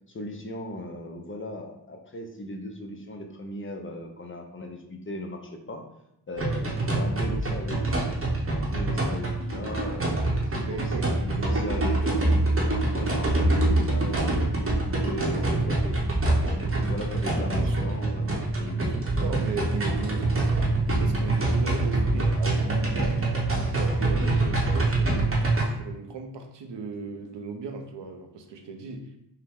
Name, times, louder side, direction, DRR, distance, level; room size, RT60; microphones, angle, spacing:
voice 1, 0.1-5.8 6.3-8.1 8.7-10.8 11.2-12.2 12.7-16.0 16.4-19.0, left 1 dB, 30° left, 3 dB, 0.5 m, -37 dB
sound 1, 6.4-25.6, right 2 dB, 30° right, 0.8 m, -25 dB
voice 2, 10.7-11.8 17.6-17.9 18.6-20.6 21.0-23.3 23.7-25.2 25.7-29.1, right 5 dB, 80° right, 5 dB, 0.6 m, -38 dB
5.5 x 2.1 x 3.5 m, 0.81 s
wide cardioid pair, 130°, 42 cm